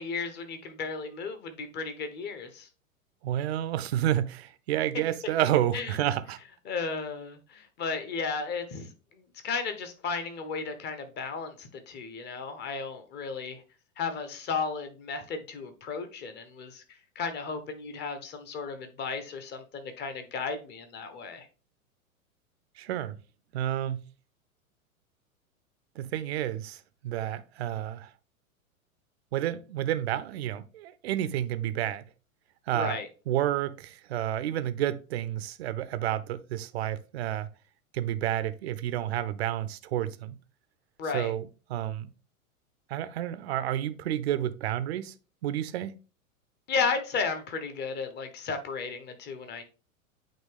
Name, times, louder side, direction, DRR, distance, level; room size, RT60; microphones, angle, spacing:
voice 1, 0.0-2.7 5.7-5.9 6.7-8.9 9.4-13.6 14.0-16.8 17.1-21.5 32.7-33.1 41.0-41.3 46.7-49.6, left 5 dB, 25° left, 1.0 m, -34 dB
voice 2, 3.2-6.4 22.8-23.2 23.5-24.0 26.0-28.1 29.3-32.0 32.7-33.0 33.3-37.5 37.9-40.4 41.1-42.1 42.9-45.1 45.4-45.9, right 12 dB, 50° right, 0.6 m, -30 dB
8.9 x 3.0 x 3.5 m
figure-of-eight pair, 100°, 42 cm